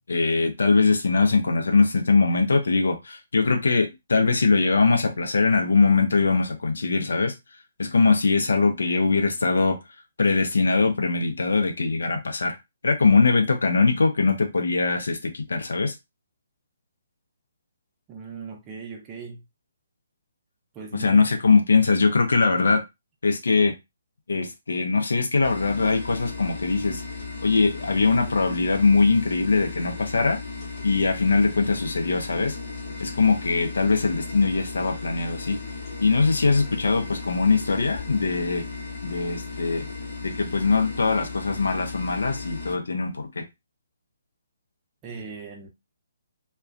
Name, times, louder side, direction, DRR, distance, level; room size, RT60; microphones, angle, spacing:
voice 1, 0.1-7.3 7.8-9.8 10.2-12.6 12.8-15.9 20.9-22.8 23.2-23.7 24.3-27.0 27.4-30.4 30.8-32.6 33.0-35.6 36.0-38.6 39.0-39.9 40.2-43.4, left 4 dB, 65° left, 0.5 m, -21 dB
voice 2, 18.1-19.4 20.7-21.3 45.0-45.7, right 4 dB, 20° right, 0.6 m, -39 dB
sound 1, 25.4-42.8, left 4 dB, 45° left, 0.9 m, -36 dB
2.3 x 2.2 x 2.4 m
figure-of-eight pair, 135°, 0 cm